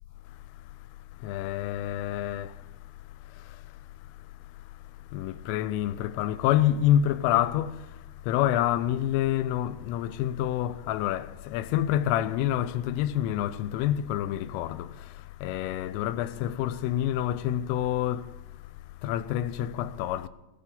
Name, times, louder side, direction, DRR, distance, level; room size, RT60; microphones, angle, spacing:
voice 1, 1.2-2.5 5.1-7.8 8.3-14.9 15.4-18.2 19.0-20.3, left 12 dB, 85° left, 3.0 m, -27 dB
18.5 x 6.8 x 6.9 m
omnidirectional pair, 5.9 m